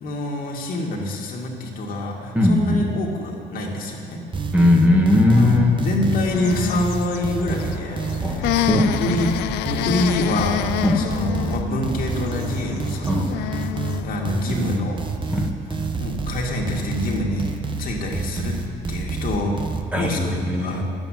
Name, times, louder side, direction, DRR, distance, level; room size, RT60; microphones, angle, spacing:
voice 1, 0.0-4.2 5.3-9.4 9.7-10.7 10.9-13.5 14.0-15.0 15.3-17.5 17.8-18.6 18.9-20.8, left 1 dB, 60° left, -1 dB, 2.1 m, -26 dB
voice 2, 2.3-2.9 4.5-5.8 8.2-9.0 10.8-11.0 13.1-13.2 15.3-15.5 19.9-20.8, left 2 dB, 10° right, 0 dB, 1.5 m, -18 dB
sound 1, 4.3-19.8, right 3 dB, 30° right, 0.9 m, -28 dB
sound 2, 6.2-14.2, left 15 dB, 90° left, 0.4 m, -28 dB
10.0 x 8.1 x 9.0 m, 2.5 s
cardioid pair, 110°, 17 cm